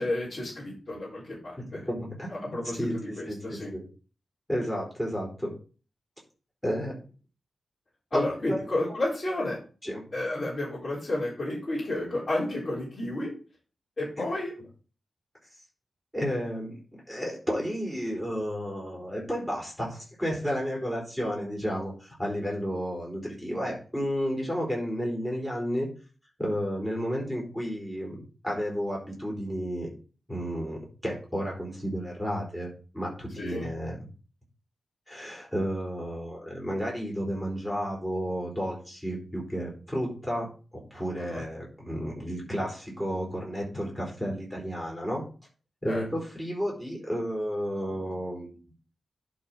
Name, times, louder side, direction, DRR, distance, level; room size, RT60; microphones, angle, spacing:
voice 1, 0.0-1.9 2.3-3.7 8.1-9.6 10.1-13.3 14.0-14.5 33.3-33.7 41.2-41.4 45.9-46.0, left 1 dB, 30° left, -7 dB, 3.8 m, -31 dB
voice 2, 1.6-3.8 4.5-5.5 6.6-7.0 8.1-8.6 9.8-10.0 16.1-25.9 26.4-28.2 28.4-29.9 30.3-34.1 35.1-40.5 40.7-45.2 45.8-48.6, equal, 5° left, -3 dB, 4.1 m, -32 dB
11.0 x 4.3 x 5.0 m, 0.36 s
wide cardioid pair, 155°, 0 cm